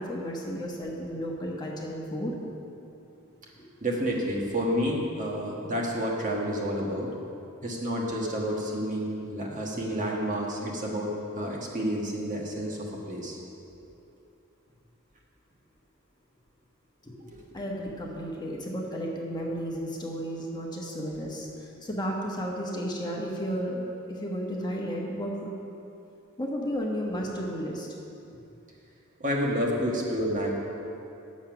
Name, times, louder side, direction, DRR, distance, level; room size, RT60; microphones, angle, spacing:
voice 1, 0.0-2.3 3.5-3.6 9.7-9.8 17.0-25.6 26.4-27.9 28.3-28.4, equal, 20° left, -2 dB, 1.2 m, -33 dB
voice 2, 3.8-7.1 7.6-13.4 17.3-17.4 29.2-30.5, equal, 40° right, -2 dB, 1.5 m, -29 dB
9.6 x 7.3 x 5.9 m, 2.8 s
head